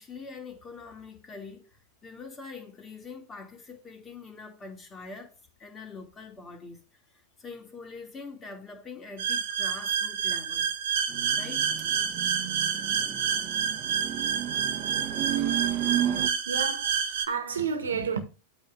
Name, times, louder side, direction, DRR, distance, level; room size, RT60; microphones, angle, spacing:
voice 1, 0.0-5.3 5.6-6.8 7.1-10.7 11.4-11.9, left 4 dB, 20° left, 2.6 m, -44 dB
sound 1, 9.2-17.2, right 8 dB, 60° right, 1.3 m, -28 dB
sound 2, 11.1-16.3, right 11 dB, 35° right, 1.3 m, -33 dB
voice 2, 16.5-18.2, right 6 dB, 80° right, 1.6 m, -31 dB
8.9 x 3.6 x 6.4 m
hypercardioid pair, 100°, 0 cm